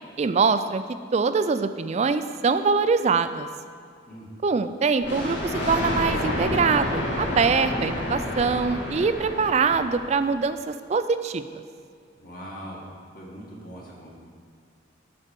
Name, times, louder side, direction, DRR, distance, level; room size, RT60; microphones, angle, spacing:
voice 1, 0.2-0.8 1.1-3.5 4.4-11.6, right 5 dB, 35° right, 11 dB, 0.3 m, -23 dB
voice 2, 4.1-4.4 12.2-12.8 13.1-14.2, equal, 45° left, -3 dB, 1.9 m, -41 dB
Thunder, 5.0-10.4, left 1 dB, 65° left, 1.7 m, -29 dB
12.0 x 4.4 x 5.2 m, 2.2 s
head